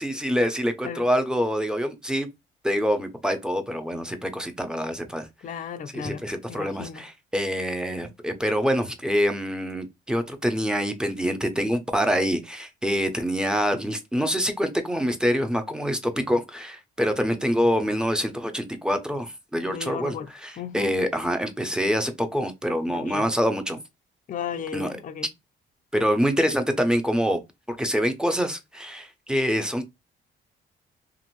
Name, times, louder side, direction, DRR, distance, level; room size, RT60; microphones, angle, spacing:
voice 1, 0.0-2.3 2.6-5.3 5.9-20.2 20.4-23.8 24.7-24.9 25.9-27.4 27.7-29.9, equal, 5° right, 0.6 m, -25 dB
voice 2, 5.4-7.0 19.7-20.3 20.6-20.9 22.9-23.3 24.3-25.3, left 7 dB, 40° left, 0.4 m, -35 dB
2.6 x 2.5 x 3.0 m
cardioid pair, 90°, 20 cm